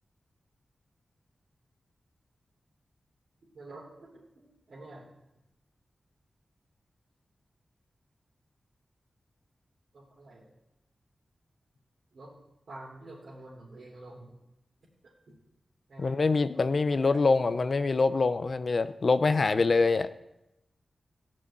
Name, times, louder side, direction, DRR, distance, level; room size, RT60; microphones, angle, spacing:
voice 1, 3.5-5.1 9.9-10.5 12.1-12.3 12.7-14.3 15.3-15.4 15.9-16.1 16.5-17.2, right 2 dB, 70° right, -7 dB, 3.6 m, -48 dB
voice 2, 16.0-20.1, left 3 dB, 45° left, 13 dB, 0.6 m, -25 dB
15.0 x 6.4 x 9.1 m, 0.91 s
wide cardioid pair, 130°, 0 cm